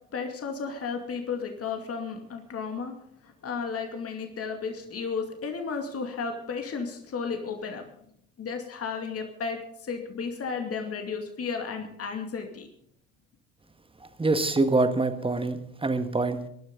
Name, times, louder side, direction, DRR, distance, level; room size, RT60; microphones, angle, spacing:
voice 1, 0.1-3.0 3.2-7.8 8.4-12.7, left 5 dB, 35° left, 4 dB, 2.4 m, -33 dB
voice 2, 14.2-16.4, right 3 dB, 15° right, 9 dB, 1.7 m, -25 dB
22.0 x 11.5 x 3.9 m, 0.70 s
figure-of-eight pair, 55°, 41 cm